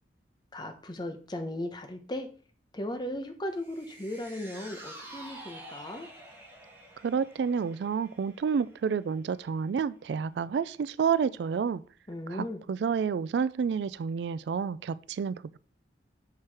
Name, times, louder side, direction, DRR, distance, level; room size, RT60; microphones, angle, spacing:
voice 1, 0.5-2.3 2.7-6.1 12.1-12.6, left 1 dB, 25° left, 0.8 m, -36 dB
sound 1, 3.6-10.0 10.4-10.5, right 1 dB, 10° right, 1.7 m, -49 dB
voice 2, 7.0-11.8 12.3-15.6, right 6 dB, 70° right, 0.3 m, -29 dB
5.9 x 4.7 x 4.7 m
head